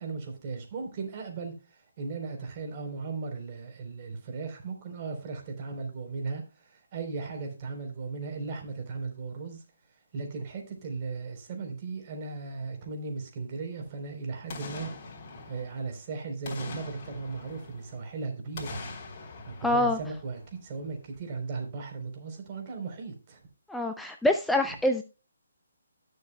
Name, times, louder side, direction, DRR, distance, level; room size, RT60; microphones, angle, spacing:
voice 1, 0.0-9.6 10.1-15.0 15.5-18.9 19.5-23.4, right 4 dB, 35° right, 3.7 m, -37 dB
Boom, 14.5-16.0 16.4-18.1 18.5-20.8 21.2-21.3, left 3 dB, 35° left, 3.5 m, -43 dB
voice 2, 19.6-20.0 23.7-25.0, left 1 dB, 5° left, 0.6 m, -25 dB
19.0 x 6.6 x 2.2 m
figure-of-eight pair, 145°, 0 cm